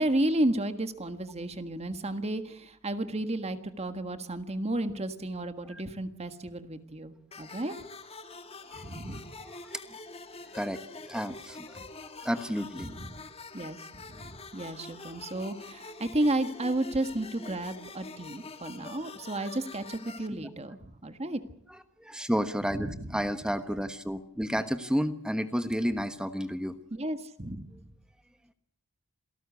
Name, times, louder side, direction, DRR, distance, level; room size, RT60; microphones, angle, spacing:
voice 1, 0.0-7.7 8.7-9.3 11.8-11.9 12.8-13.1 13.5-13.8 14.0-21.4 22.7-23.1 26.9-27.8, right 1 dB, 30° right, 9 dB, 1.6 m, -32 dB
sound 1, 7.3-20.3, left 3 dB, 25° left, 2.0 m, -46 dB
voice 2, 8.7-9.0 9.3-9.8 10.5-12.9 15.0-15.1 20.4-20.5 22.0-26.8, equal, 5° right, 9 dB, 1.1 m, -32 dB
28.0 x 18.0 x 8.4 m, 0.68 s
head